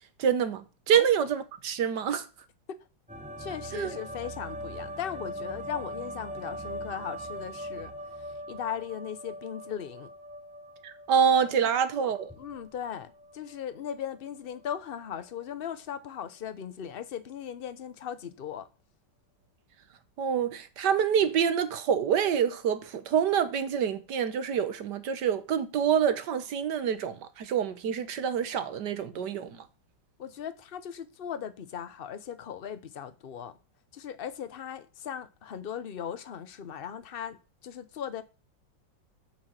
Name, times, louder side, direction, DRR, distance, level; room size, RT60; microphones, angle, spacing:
voice 1, 0.2-2.3 3.7-4.0 10.8-12.3 20.2-29.6, right 8 dB, 65° right, 1.5 m, -26 dB
sound 1, 3.1-13.6 14.0-14.6, equal, 5° right, 1.1 m, -41 dB
voice 2, 3.4-7.9 8.5-10.1 12.0-18.7 30.2-33.5 33.9-37.4 37.6-38.2, left 8 dB, 50° left, 0.6 m, -38 dB
8.8 x 6.0 x 7.5 m
omnidirectional pair, 2.1 m